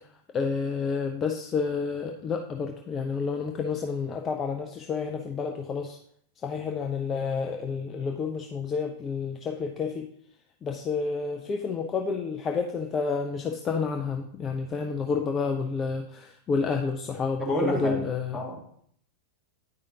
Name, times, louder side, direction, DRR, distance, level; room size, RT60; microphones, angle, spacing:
voice 1, 0.3-6.0 6.4-10.1 10.6-18.4, left 5 dB, 25° left, 4 dB, 0.5 m, -30 dB
voice 2, 17.4-18.0 18.3-18.6, equal, ahead, -4 dB, 1.8 m, -28 dB
9.6 x 4.9 x 2.7 m, 0.66 s
figure-of-eight pair, 90°, 0 cm